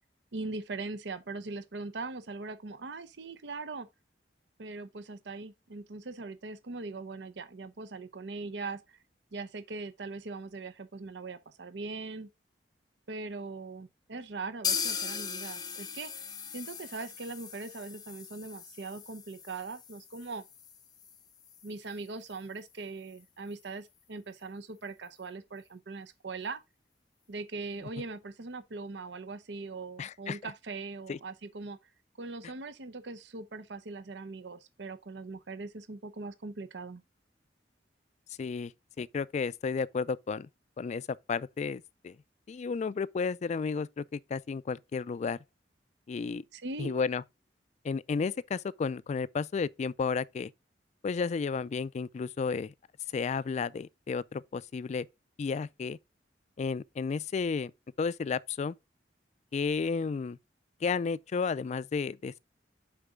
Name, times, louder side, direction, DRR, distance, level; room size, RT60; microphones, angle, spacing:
voice 1, 0.3-3.9 4.6-9.0 9.3-12.3 13.1-16.1 16.5-20.4 21.6-26.6 27.3-31.8 32.2-37.0 46.5-47.0, right 3 dB, 75° right, 0.7 m, -41 dB
sound 1, 14.6-22.4 22.7-22.8 23.1-23.2 23.6-23.7, left 6 dB, 25° left, 0.7 m, -39 dB
voice 2, 30.0-30.4 31.1-31.2 38.4-40.5 40.8-42.2 42.5-45.4 46.1-46.4 46.8-47.2 47.8-50.5 51.0-52.7 53.1-55.1 55.4-56.0 56.6-57.7 58.0-58.8 59.5-60.4 60.8-62.4, left 5 dB, 40° left, 0.3 m, -32 dB
6.6 x 5.2 x 3.6 m
head